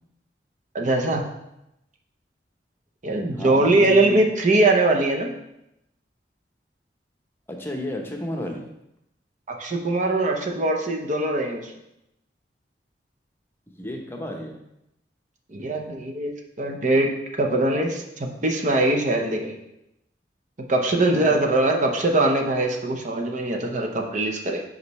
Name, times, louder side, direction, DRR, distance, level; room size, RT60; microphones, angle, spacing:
voice 1, 0.7-1.3 3.0-5.3 9.5-11.7 15.5-17.1 17.4-19.5 20.7-24.6, right 2 dB, 45° right, 2 dB, 0.7 m, -22 dB
voice 2, 3.3-4.2 7.5-8.7 13.7-14.6 21.1-21.5, left 1 dB, 15° left, 1 dB, 0.8 m, -32 dB
5.3 x 5.1 x 4.1 m, 0.85 s
head